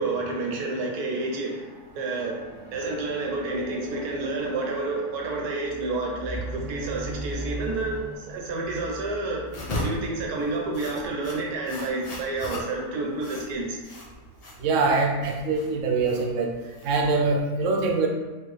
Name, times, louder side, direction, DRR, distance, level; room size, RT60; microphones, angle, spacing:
voice 1, 0.0-2.4 2.7-9.5 9.7-13.8, right 2 dB, 90° right, -1 dB, 1.3 m, -29 dB
sound 1, 1.6-11.1 11.9-12.0, right 1 dB, 5° right, 0.6 m, -40 dB
sound 2, 9.5-17.4, left 1 dB, 60° left, 0.4 m, -37 dB
voice 2, 14.6-16.5 16.8-18.1, right 3 dB, 65° right, 1 dB, 0.9 m, -23 dB
4.5 x 2.4 x 3.2 m, 1.2 s
omnidirectional pair, 1.6 m